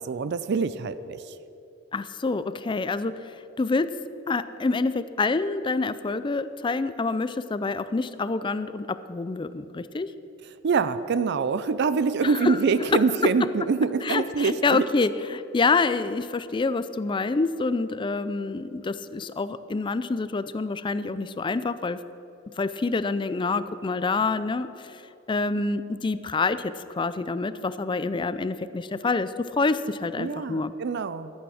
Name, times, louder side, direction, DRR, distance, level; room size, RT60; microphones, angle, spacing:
voice 1, 0.0-1.3 10.6-14.9 30.2-31.3, right 5 dB, 60° right, 13 dB, 0.4 m, -25 dB
voice 2, 1.9-3.9 4.3-10.1 12.2-12.6 12.9-13.0 14.0-22.0 22.6-25.0 25.3-30.7, left 3 dB, 25° left, 13 dB, 0.4 m, -27 dB
13.5 x 8.6 x 6.3 m, 2.9 s
head